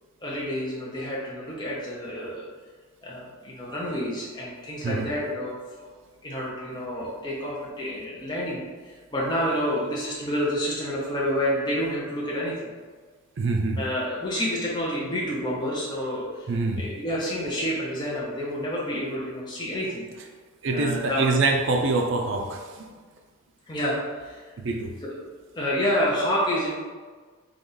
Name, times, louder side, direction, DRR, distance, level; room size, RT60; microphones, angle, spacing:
voice 1, 0.2-2.4 3.0-5.6 5.8-5.9 6.2-12.5 13.8-16.5 16.8-20.0 20.7-21.3 23.7-24.4 25.0-25.1 25.6-26.7, equal, 20° left, -5 dB, 0.6 m, -29 dB
voice 2, 13.4-13.8 16.5-16.8 20.6-22.9 24.6-24.9, right 3 dB, 55° right, 3 dB, 0.4 m, -25 dB
3.9 x 3.0 x 3.8 m, 1.4 s
head